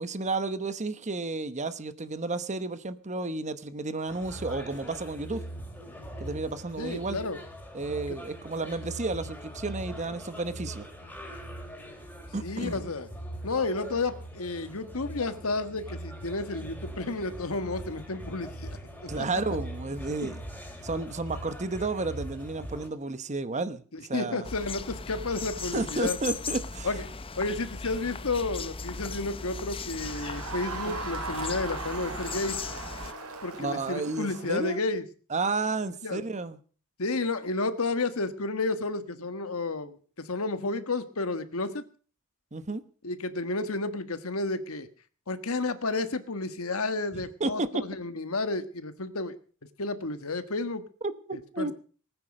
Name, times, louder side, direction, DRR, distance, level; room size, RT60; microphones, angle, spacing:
voice 1, 0.0-5.4 6.2-7.2 7.7-10.9 12.3-12.8 19.1-20.4 20.8-23.8 24.1-24.5 25.7-26.9 33.6-34.8 35.3-36.6 42.5-42.8 47.4-47.8 51.0-51.7, right 3 dB, 30° right, 1.0 m, -32 dB
sound 1, 4.1-22.9, right 1 dB, 5° left, 4.1 m, -41 dB
voice 2, 6.8-7.4 8.1-8.2 12.4-13.1 13.4-18.8 19.0-19.3 20.2-20.3 23.9-26.2 26.8-27.0 27.4-32.6 33.4-35.0 36.0-36.2 37.0-41.8 43.0-44.9 45.3-49.3 49.8-50.8 51.3-51.7, left 3 dB, 70° left, 1.4 m, -31 dB
sound 2, 24.4-33.1, left 4 dB, 25° left, 0.7 m, -38 dB
Crowd, 30.0-34.8, right 3 dB, 75° right, 3.9 m, -38 dB
20.0 x 9.4 x 6.5 m
head